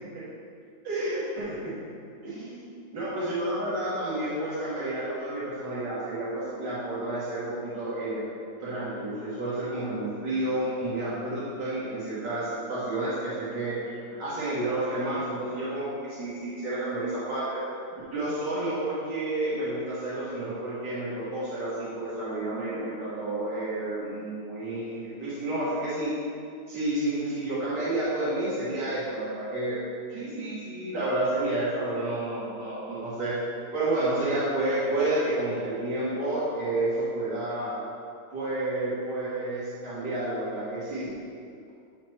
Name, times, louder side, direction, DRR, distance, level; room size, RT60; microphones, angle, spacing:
voice 1, 0.8-1.7 2.2-2.7 2.9-8.2 8.6-13.8 14.1-17.6 18.1-26.1 26.7-29.8 30.1-33.3 33.7-37.8 38.3-41.1, right 1 dB, 75° right, -11 dB, 2.7 m, -30 dB
11.0 x 4.3 x 3.2 m, 2.4 s
omnidirectional pair, 1.9 m